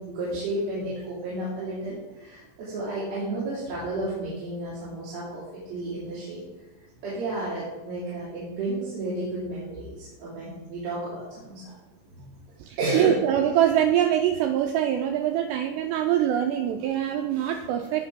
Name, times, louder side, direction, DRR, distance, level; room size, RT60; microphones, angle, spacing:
voice 1, 0.0-6.4 7.0-11.7 12.2-12.3 12.8-13.2, right 2 dB, 55° right, -10 dB, 4.5 m, -32 dB
voice 2, 12.6-18.1, right 11 dB, 85° right, 6 dB, 2.4 m, -24 dB
17.0 x 6.0 x 3.6 m, 1.1 s
omnidirectional pair, 5.5 m